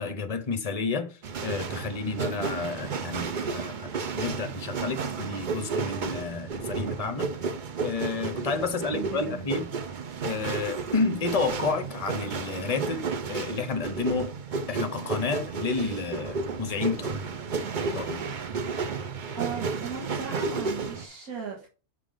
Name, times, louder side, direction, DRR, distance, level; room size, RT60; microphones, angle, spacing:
voice 1, 0.0-3.9 4.1-7.3 7.8-9.7 10.2-14.3 14.7-17.3 17.9-18.2, left 4 dB, 35° left, 0.7 m, -30 dB
sound 1, 1.2-21.1, right 4 dB, 50° right, 0.6 m, -32 dB
voice 2, 8.9-9.5 19.4-21.7, right 6 dB, 90° right, 2.0 m, -37 dB
6.7 x 3.7 x 5.0 m
omnidirectional pair, 1.5 m